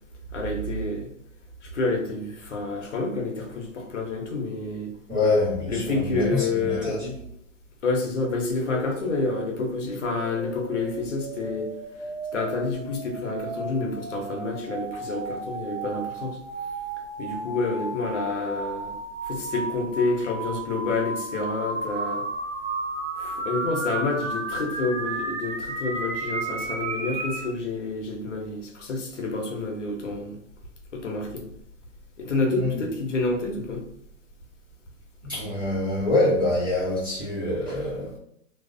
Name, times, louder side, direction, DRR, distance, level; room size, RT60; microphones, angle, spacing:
voice 1, 0.3-1.1 1.6-4.9 5.7-6.9 7.8-11.7 12.0-16.4 17.2-18.9 19.2-22.3 23.2-30.4 30.9-31.5 32.2-33.8, left 3 dB, 65° left, 1 dB, 0.7 m, -28 dB
voice 2, 5.1-7.1 32.5-32.8 35.2-38.2, left 2 dB, 15° right, -12 dB, 0.5 m, -25 dB
sound 1, 8.6-27.5, right 3 dB, 65° right, 0.7 m, -33 dB
2.4 x 2.0 x 2.5 m, 0.74 s
hypercardioid pair, 175°, 39 cm